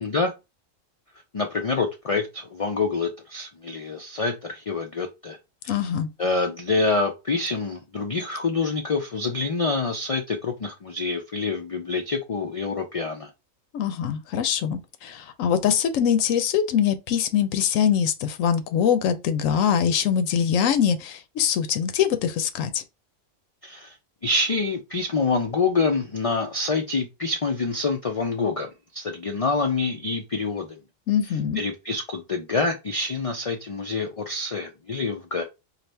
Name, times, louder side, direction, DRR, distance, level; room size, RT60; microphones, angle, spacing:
voice 1, 0.0-0.3 1.3-5.4 5.6-5.7 6.2-13.3 23.6-23.9 24.2-28.7 28.9-30.8 31.6-35.4, left 3 dB, 65° left, 0.3 m, -26 dB
voice 2, 5.7-6.1 13.7-22.8 31.1-31.6, left 8 dB, 85° left, 1.0 m, -23 dB
4.1 x 2.5 x 3.3 m
omnidirectional pair, 1.3 m